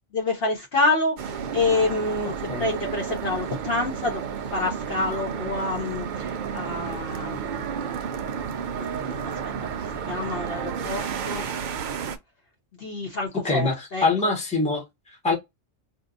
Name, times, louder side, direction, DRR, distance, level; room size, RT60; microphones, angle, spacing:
voice 1, 0.1-7.6 8.7-9.3 9.9-11.6 12.8-14.3, left 2 dB, 50° left, 0.9 m, -28 dB
sound 1, 1.2-12.2, right 7 dB, 80° right, 0.4 m, -31 dB
voice 2, 2.2-2.7 13.4-15.4, left 3 dB, 5° left, 0.8 m, -25 dB
2.7 x 2.2 x 3.8 m
omnidirectional pair, 1.4 m